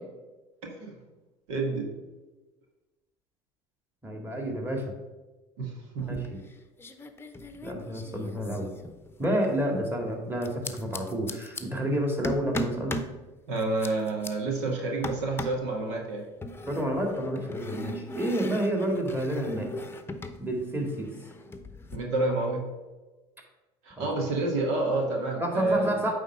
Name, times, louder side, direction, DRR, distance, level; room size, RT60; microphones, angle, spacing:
voice 1, 0.6-0.9 1.5-1.9 5.6-6.3 13.5-16.2 21.9-22.6 23.8-25.9, right 2 dB, 80° right, 1 dB, 1.6 m, -29 dB
voice 2, 4.0-4.9 6.1-6.4 7.6-8.7 9.2-13.0 16.6-19.7 20.4-21.1 24.0-24.1 25.4-26.1, equal, 15° right, 1 dB, 2.0 m, -29 dB
sound 1, 6.0-6.5 6.8-9.4 10.4-11.6 12.2-13.1 13.6-14.3 15.0-15.7 16.4-20.4 20.7-22.0, left 1 dB, 15° left, 0.8 m, -38 dB
9.1 x 3.7 x 5.5 m, 1.2 s
hypercardioid pair, 80°, 15 cm